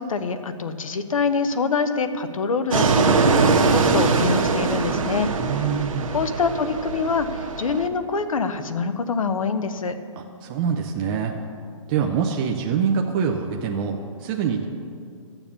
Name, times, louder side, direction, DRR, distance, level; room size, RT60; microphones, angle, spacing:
voice 1, 0.0-5.3 6.1-10.0, left 5 dB, 80° left, 10 dB, 1.0 m, -25 dB
Fixed-wing aircraft airplane, 2.7-7.9, right 4 dB, 80° right, 1.2 m, -22 dB
voice 2, 5.2-6.2 10.2-11.3 11.9-14.6, right 6 dB, 15° right, 1 dB, 0.4 m, -25 dB
12.5 x 7.1 x 7.0 m, 2.3 s
hypercardioid pair, 160°, 17 cm